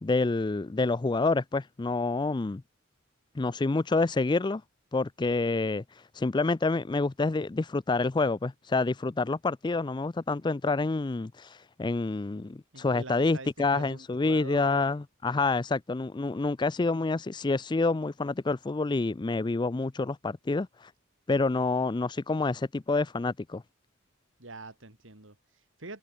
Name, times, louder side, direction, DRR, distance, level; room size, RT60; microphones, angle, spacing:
voice 1, 0.0-2.6 3.4-4.6 4.9-5.8 6.1-20.9 21.3-23.6, left 3 dB, 20° left, 0.4 m, -28 dB
voice 2, 12.7-14.9 24.4-26.0, right 3 dB, 75° right, 4.1 m, -45 dB
head